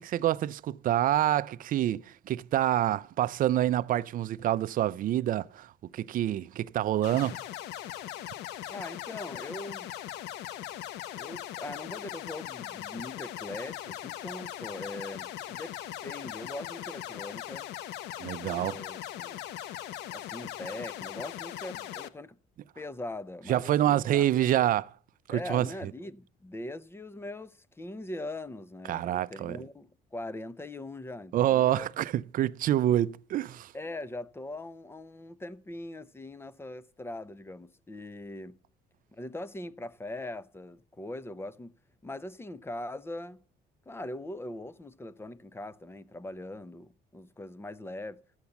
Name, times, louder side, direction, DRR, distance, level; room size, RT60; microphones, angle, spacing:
voice 1, 0.0-2.0 2.3-5.7 5.9-7.4 18.2-18.8 23.5-24.9 25.3-25.7 28.9-29.6 31.3-33.7, right 12 dB, 55° right, 0.5 m, -27 dB
sound 1, 7.0-22.1, left 12 dB, 90° left, 0.9 m, -40 dB
voice 2, 8.7-9.9 11.2-15.7 16.0-17.7 18.6-19.4 20.1-22.4 22.8-24.3 25.3-31.9 33.7-38.6 39.1-41.8 42.0-43.4 43.9-48.2, left 1 dB, 15° left, 0.7 m, -41 dB
13.0 x 8.1 x 7.1 m
cardioid pair, 110°, 17 cm